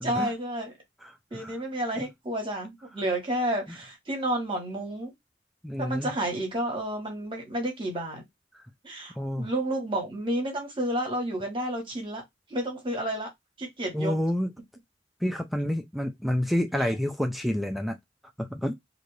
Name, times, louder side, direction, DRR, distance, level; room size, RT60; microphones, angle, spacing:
voice 1, 0.0-0.7 1.3-5.1 5.8-8.2 8.8-12.2 12.5-13.3 13.6-14.1, right 1 dB, 30° right, 1.1 m, -30 dB
voice 2, 1.0-1.5 2.0-2.1 5.6-6.1 9.2-9.5 13.9-14.5 15.2-18.0 18.4-18.7, left 1 dB, ahead, 0.3 m, -29 dB
2.6 x 2.5 x 3.1 m
head